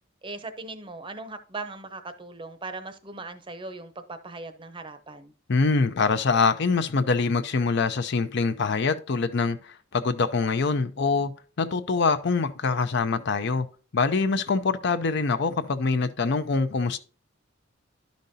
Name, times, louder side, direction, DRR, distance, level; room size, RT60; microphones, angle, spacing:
voice 1, 0.2-5.3, right 3 dB, 25° right, 0.7 m, -39 dB
voice 2, 5.5-11.3 11.6-13.7 13.9-17.0, left 4 dB, 60° left, 0.5 m, -24 dB
11.5 x 5.2 x 2.7 m
head